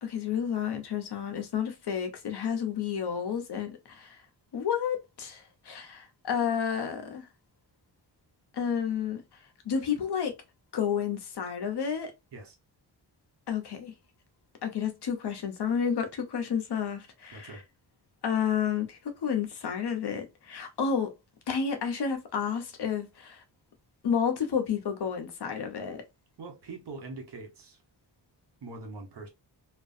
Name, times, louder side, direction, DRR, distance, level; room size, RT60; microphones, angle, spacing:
voice 1, 0.0-4.2 4.5-7.3 8.5-9.2 9.6-10.3 10.7-12.1 13.5-13.9 14.6-17.5 18.2-21.1 21.5-23.4 24.0-26.0, left 7 dB, 65° left, 0.8 m, -31 dB
voice 2, 17.3-17.6 26.4-27.8 28.6-29.3, right 3 dB, 65° right, 1.1 m, -43 dB
2.4 x 2.2 x 2.6 m
cardioid pair, 70°, 43 cm